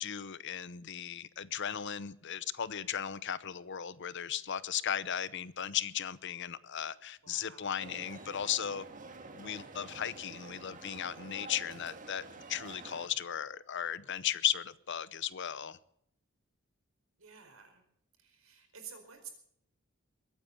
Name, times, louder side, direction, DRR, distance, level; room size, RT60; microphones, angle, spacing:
voice 1, 0.0-8.8 9.3-12.2 12.5-15.8, left 9 dB, 55° left, 0.8 m, -36 dB
voice 2, 7.2-7.8 17.2-17.8 18.2-19.3, right 7 dB, 80° right, 4.8 m, -51 dB
sound 1, 7.8-13.1, right 3 dB, 40° right, 1.7 m, -49 dB
22.0 x 9.1 x 7.1 m
head